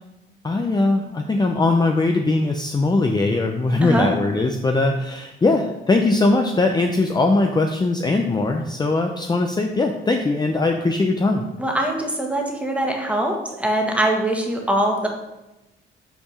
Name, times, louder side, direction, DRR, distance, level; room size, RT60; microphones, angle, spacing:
voice 1, 0.4-11.5, left 2 dB, 20° left, 3 dB, 0.6 m, -20 dB
voice 2, 3.8-4.1 11.6-15.1, right 1 dB, 5° right, 1 dB, 1.5 m, -22 dB
5.8 x 4.5 x 5.5 m, 0.98 s
cardioid pair, 90°, 20 cm